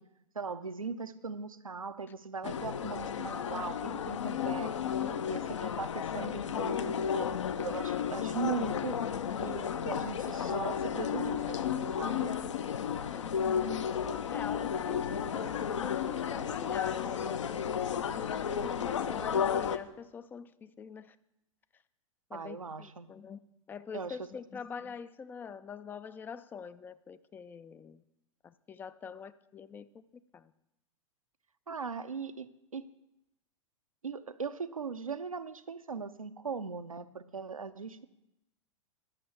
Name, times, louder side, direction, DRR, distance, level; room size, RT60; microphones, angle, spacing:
voice 1, 0.3-4.8 5.3-9.0 9.4-12.4 22.3-23.1 23.9-24.2 31.7-32.9 34.0-38.0, right 5 dB, 80° right, 0.6 m, -39 dB
sound 1, 2.4-19.8, left 8 dB, 60° left, 0.6 m, -33 dB
voice 2, 4.8-5.3 13.1-13.4 14.3-21.2 22.3-23.4 23.7-28.0 28.4-30.0 30.3-30.5, left 6 dB, 10° left, 0.3 m, -45 dB
11.0 x 6.8 x 8.0 m
figure-of-eight pair, 100°, 17 cm